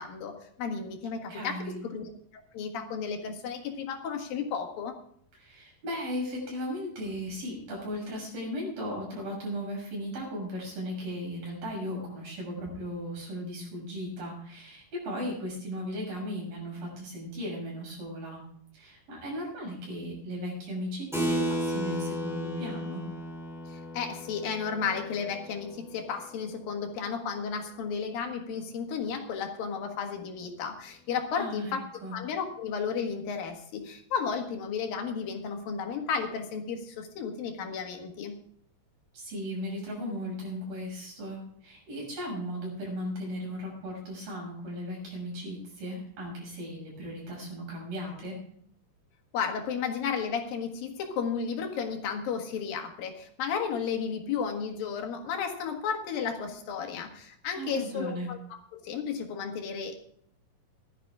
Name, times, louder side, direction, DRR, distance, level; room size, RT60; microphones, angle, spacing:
voice 1, 0.0-4.9 23.7-31.8 32.1-38.4 49.3-60.1, left 6 dB, 80° left, 4 dB, 3.5 m, -33 dB
voice 2, 1.3-1.7 5.4-18.4 18.7-23.1 31.4-32.2 39.1-48.4 57.6-58.3, equal, 80° right, -2 dB, 8.3 m, -36 dB
Keyboard (musical), 21.1-27.1, equal, ahead, 3.9 m, -34 dB
16.0 x 12.5 x 3.7 m, 0.65 s
omnidirectional pair, 4.0 m